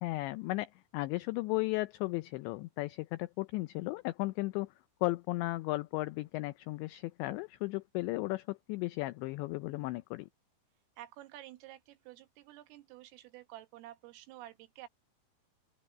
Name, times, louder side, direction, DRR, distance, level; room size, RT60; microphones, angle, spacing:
voice 1, 0.0-4.7 5.0-10.3, left 20 dB, 85° left, 2.5 m, -35 dB
voice 2, 11.0-14.9, right 14 dB, 85° right, 4.0 m, -51 dB
open air
omnidirectional pair, 5.8 m